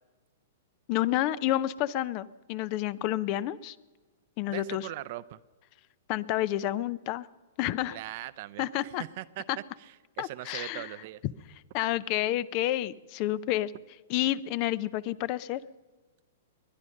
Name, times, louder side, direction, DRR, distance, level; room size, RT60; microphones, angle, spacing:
voice 1, 0.9-3.8 4.4-4.9 6.1-7.3 7.6-8.0 8.6-9.0 9.5-9.6 10.2-10.9 11.7-13.7 14.1-15.6, left 14 dB, 45° left, 18 dB, 0.6 m, -29 dB
voice 2, 4.5-5.4 7.9-9.4 9.8-11.2, right 16 dB, 50° right, 16 dB, 0.6 m, -40 dB
21.5 x 10.5 x 6.5 m, 1.3 s
hypercardioid pair, 115°, 0 cm